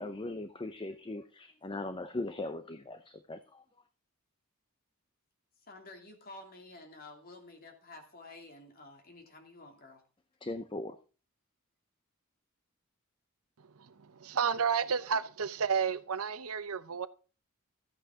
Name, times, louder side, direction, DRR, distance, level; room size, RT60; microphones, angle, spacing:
voice 1, 0.0-3.6 10.4-11.0, left 2 dB, 25° left, 0.6 m, -39 dB
voice 2, 5.6-10.0, left 2 dB, 45° left, 2.6 m, -51 dB
voice 3, 13.8-17.1, right 6 dB, 80° right, 0.7 m, -31 dB
13.5 x 8.5 x 3.7 m
head